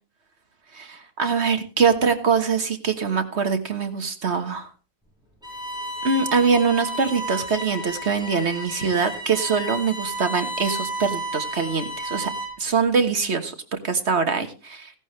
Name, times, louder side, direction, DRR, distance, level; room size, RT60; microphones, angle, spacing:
voice 1, 0.7-4.7 6.0-12.3 12.6-13.5 13.8-14.9, right 5 dB, 55° right, 8 dB, 1.6 m, -23 dB
Bowed string instrument, 5.4-12.7, right 1 dB, 5° right, 7.0 m, -32 dB
16.5 x 11.5 x 3.2 m, 0.33 s
omnidirectional pair, 1.4 m